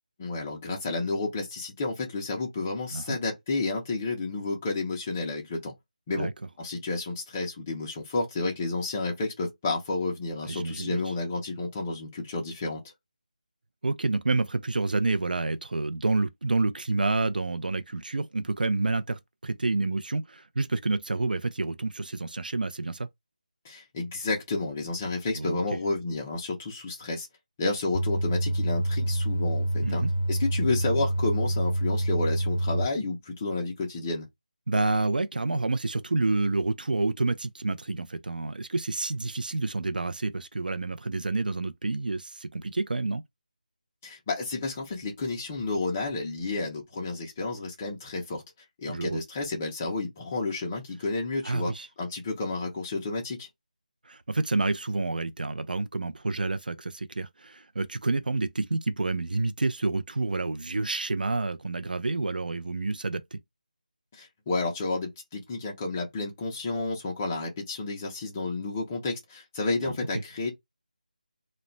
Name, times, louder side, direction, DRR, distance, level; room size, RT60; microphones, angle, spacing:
voice 1, 0.2-5.7 6.1-6.3 6.6-12.8 23.6-27.3 27.6-30.0 30.3-34.3 44.0-48.4 48.8-51.7 52.0-53.5 64.1-70.5, left 3 dB, 15° left, 0.4 m, -31 dB
voice 2, 10.4-11.0 13.8-23.1 25.3-25.6 29.8-30.1 34.7-43.2 48.9-49.2 51.4-51.9 54.1-63.4, right 3 dB, 90° right, 0.4 m, -28 dB
sound 1, 27.9-32.9, right 1 dB, 90° left, 0.6 m, -27 dB
2.1 x 2.0 x 3.7 m
figure-of-eight pair, 170°, 5 cm